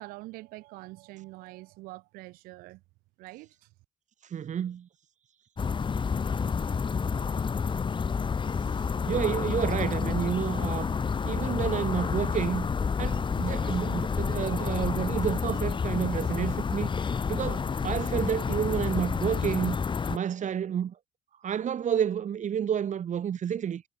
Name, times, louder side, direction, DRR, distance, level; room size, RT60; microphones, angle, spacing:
voice 1, 0.0-2.8 3.2-3.7, right 21 dB, 85° right, 4.4 m, -45 dB
voice 2, 4.3-4.9 9.1-10.9 11.2-12.7 13.0-16.9 17.3-19.8 20.1-20.9 21.4-23.8, right 9 dB, 55° right, 4.2 m, -30 dB
sound 1, 5.6-20.2, left 5 dB, 35° left, 0.9 m, -29 dB
supercardioid pair, 65°, 15 cm